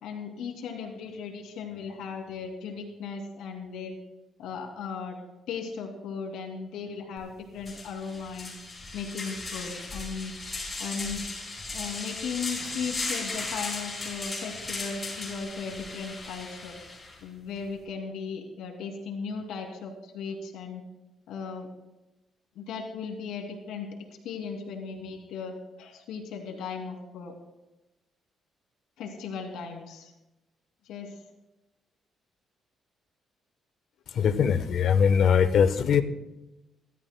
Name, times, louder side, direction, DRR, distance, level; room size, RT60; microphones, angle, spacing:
voice 1, 0.0-4.0 4.4-5.2 5.5-8.5 8.9-10.3 10.8-11.2 11.7-16.8 17.2-20.8 21.3-21.7 22.6-23.9 24.2-27.3 29.0-30.1 30.9-31.2 34.1-34.5, left 5 dB, 85° left, 2 dB, 2.8 m, -37 dB
sound 1, 7.2-7.3 7.6-17.2, left 3 dB, 25° left, 5.3 m, -37 dB
voice 2, 34.2-36.0, left 7 dB, 65° left, 10 dB, 1.0 m, -21 dB
27.0 x 13.5 x 2.3 m, 0.98 s
cardioid pair, 90°, 0 cm